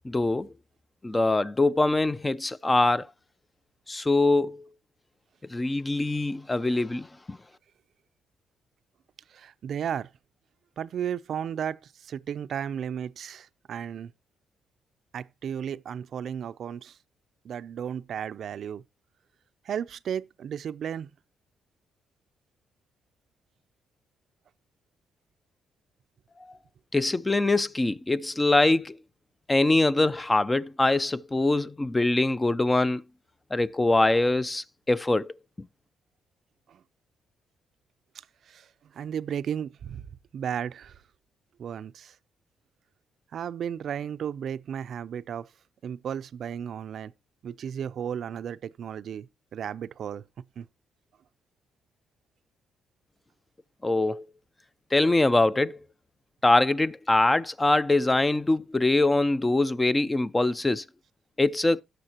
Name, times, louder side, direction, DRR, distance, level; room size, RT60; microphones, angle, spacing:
voice 1, 0.0-0.5 1.0-3.1 3.9-4.6 5.5-7.4 26.9-29.0 29.5-33.0 33.5-35.3 53.8-54.2 54.9-55.8 56.4-60.8 61.4-61.8, left 2 dB, 15° left, 0.5 m, -23 dB
voice 2, 9.3-10.1 10.8-14.1 15.1-17.0 17.4-18.8 19.6-21.1 36.7-36.8 38.5-40.1 40.3-41.0 41.6-42.2 43.3-45.5 45.8-47.1 47.4-50.2 50.6-50.7, right 8 dB, 60° right, 0.5 m, -34 dB
17.5 x 6.4 x 2.9 m
cardioid pair, 90°, 0 cm